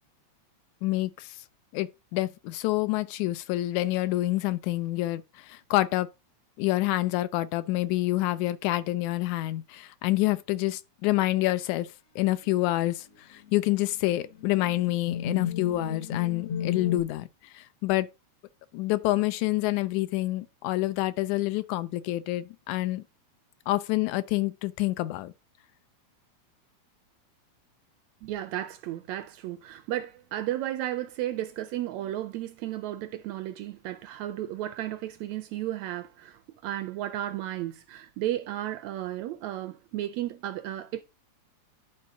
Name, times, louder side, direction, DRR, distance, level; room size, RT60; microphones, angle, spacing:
voice 1, 0.8-1.4 1.7-6.1 6.6-18.1 18.7-23.0 23.7-25.3, left 17 dB, 80° left, 1.9 m, -27 dB
sound 1, 12.4-12.7 13.5-13.6 14.4-17.0, left 8 dB, 65° left, 1.9 m, -33 dB
voice 2, 28.2-41.0, right 13 dB, 80° right, 1.6 m, -34 dB
11.0 x 4.3 x 3.8 m
omnidirectional pair, 3.5 m